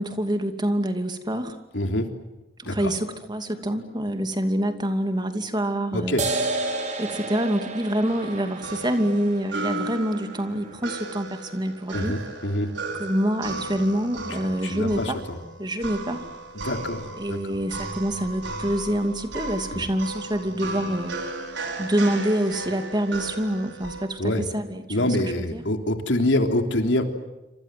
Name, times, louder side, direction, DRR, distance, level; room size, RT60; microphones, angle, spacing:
voice 1, 0.0-1.6 2.6-6.2 7.0-12.1 13.0-15.2 15.6-16.3 17.2-21.1 21.8-25.6, right 1 dB, 25° right, 7 dB, 2.6 m, -26 dB
voice 2, 1.7-2.1 2.6-2.9 5.9-6.2 11.9-12.7 14.6-15.4 16.5-17.4 19.7-19.8 24.2-24.5 24.9-27.0, left 1 dB, 85° left, 5 dB, 3.5 m, -25 dB
sound 1, 6.2-13.2, right 2 dB, 40° right, 4.7 m, -33 dB
sound 2, 8.0-24.1, right 2 dB, 80° right, 5.3 m, -35 dB
28.0 x 26.0 x 7.8 m, 1.0 s
head